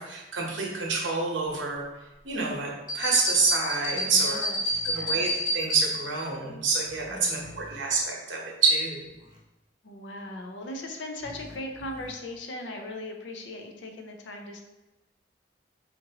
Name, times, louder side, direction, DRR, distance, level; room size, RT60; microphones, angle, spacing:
voice 1, 0.0-1.8 2.2-4.4 4.9-5.3 5.5-9.1, right 4 dB, 80° right, -1 dB, 0.9 m, -27 dB
sound 1, 2.9-6.2, equal, 50° left, 1.4 m, -29 dB
voice 2, 3.9-5.4 7.1-7.9 9.8-14.6, left 1 dB, 70° left, 3 dB, 0.6 m, -39 dB
sound 2, 4.6-5.0 6.8-7.8 9.0-9.4 11.2-12.1, left 1 dB, 25° right, 0.7 m, -49 dB
4.3 x 2.6 x 2.8 m, 1.0 s
head